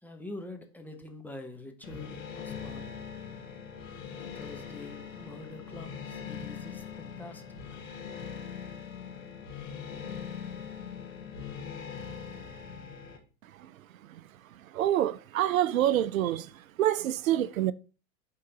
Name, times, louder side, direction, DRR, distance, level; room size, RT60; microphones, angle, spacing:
voice 1, 0.0-2.9 4.1-7.4, left 1 dB, 5° left, 1.1 m, -45 dB
sound 1, 1.8-13.2, left 7 dB, 75° left, 1.8 m, -41 dB
voice 2, 14.7-17.7, right 12 dB, 80° right, 0.5 m, -27 dB
10.0 x 3.8 x 4.0 m
hypercardioid pair, 105°, 40 cm